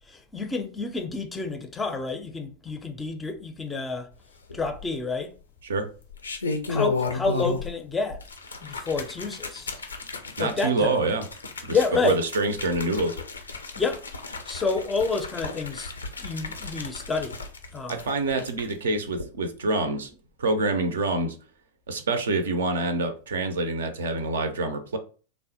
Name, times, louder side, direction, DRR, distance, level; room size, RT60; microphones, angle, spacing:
voice 1, 0.1-4.1 4.5-5.3 6.7-8.2 8.6-9.8 10.4-11.0 11.7-12.2 13.8-14.0 14.4-15.9 16.2-17.4 17.7-18.0, left 4 dB, 15° left, 0.4 m, -29 dB
sound 1, 4.5-5.1 6.0-7.8 8.1-18.7 19.1-19.2, left 3 dB, 75° left, 0.4 m, -34 dB
voice 2, 10.4-11.2 11.7-11.8 12.0-13.2 17.9-20.1 20.4-21.4 21.9-25.0, right 3 dB, 65° right, 0.4 m, -26 dB
3.4 x 2.0 x 2.7 m
figure-of-eight pair, 90°, 0 cm